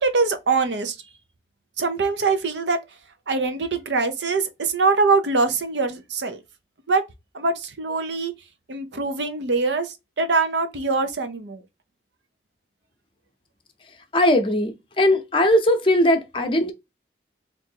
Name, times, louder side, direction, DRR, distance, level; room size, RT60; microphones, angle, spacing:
voice 1, 0.0-1.0 1.8-2.8 3.3-6.4 6.9-7.0 7.3-8.3 8.7-11.6, right 4 dB, 85° right, 0.8 m, -23 dB
voice 2, 14.1-16.7, left 1 dB, 30° left, 0.6 m, -19 dB
3.7 x 2.6 x 4.4 m
head